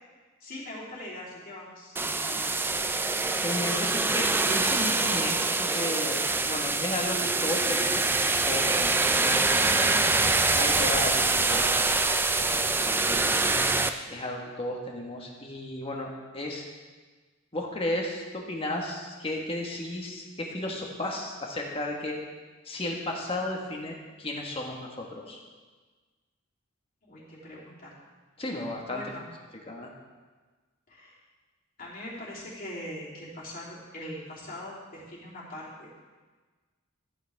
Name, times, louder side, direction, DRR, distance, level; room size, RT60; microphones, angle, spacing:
voice 1, 0.4-2.7 27.0-27.9 28.9-29.2 30.9-31.2 31.8-36.0, left 1 dB, 45° left, -7 dB, 3.3 m, -41 dB
sound 1, 2.0-13.9, right 3 dB, 10° right, 0.4 m, -25 dB
voice 2, 3.4-8.1 8.5-9.9 10.5-12.0 12.4-12.5 12.8-13.3 14.1-16.7 17.5-22.2 22.6-25.4 28.4-29.0 29.7-29.9, left 1 dB, 30° left, 0 dB, 1.6 m, -34 dB
14.0 x 9.0 x 3.6 m, 1.4 s
head